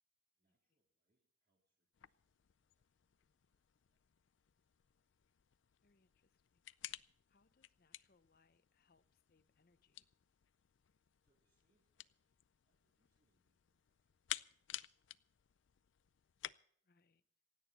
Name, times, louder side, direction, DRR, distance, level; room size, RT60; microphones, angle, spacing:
voice 1, 0.4-4.0 11.2-14.9, right 1 dB, 50° right, 3.7 m, -89 dB
sound 1, 1.9-16.5, left 13 dB, 85° left, 0.5 m, -54 dB
voice 2, 5.8-6.6 7.3-10.1 16.8-17.2, left 4 dB, 50° left, 0.7 m, -76 dB
26.5 x 9.2 x 4.1 m
head